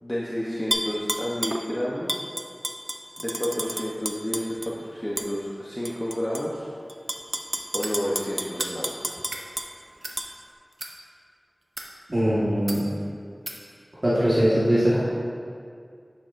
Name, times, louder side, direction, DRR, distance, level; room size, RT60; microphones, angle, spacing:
voice 1, 0.0-2.2 3.2-6.7 7.7-9.2, equal, 20° left, -6 dB, 0.9 m, -30 dB
Tap / Glass, 0.7-1.6 2.1-4.7 5.2-5.3 5.8-6.4 6.9-9.7 10.2-10.3, equal, 10° right, 0.5 m, -30 dB
sound 1, 7.8-8.0 8.6-8.8 9.2-9.5 10.0-10.2 10.7-10.9 11.6-11.9 12.7-12.8 13.5-13.6, right 2 dB, 70° right, 0.7 m, -36 dB
voice 2, 12.1-12.8 14.0-15.0, equal, 45° right, -11 dB, 1.6 m, -21 dB
10.0 x 6.4 x 2.6 m, 2.2 s
wide cardioid pair, 60°, 0 cm